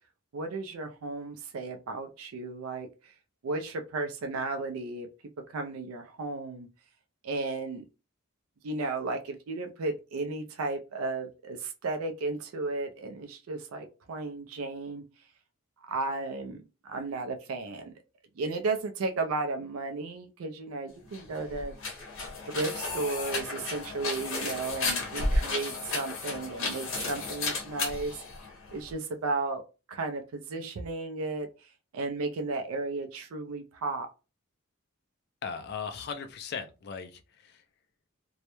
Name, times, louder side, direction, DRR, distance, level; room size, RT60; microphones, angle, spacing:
voice 1, 0.3-3.1 3.4-5.1 5.5-6.7 7.2-7.8 8.6-15.0 15.8-17.9 18.4-21.7 22.5-28.2 28.7-29.6 29.9-34.1, right 3 dB, 90° right, 0.4 m, -34 dB
sound 1, 21.0-28.9, left 3 dB, 70° left, 0.8 m, -33 dB
voice 2, 35.4-37.6, left 6 dB, 50° left, 0.3 m, -38 dB
2.2 x 2.0 x 2.9 m
head